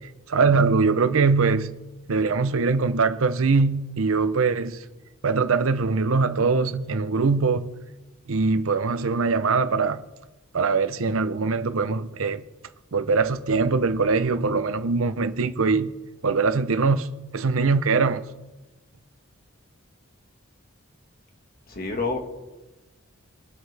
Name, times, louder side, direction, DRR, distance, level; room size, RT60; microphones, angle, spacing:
voice 1, 0.3-1.7 2.1-4.8 5.2-7.7 8.3-10.0 10.5-12.4 12.9-15.9 16.2-17.1 17.3-18.2, right 4 dB, 85° right, 0.7 m, -22 dB
voice 2, 21.7-22.2, left 3 dB, 45° left, 1.7 m, -27 dB
23.5 x 8.0 x 3.4 m
head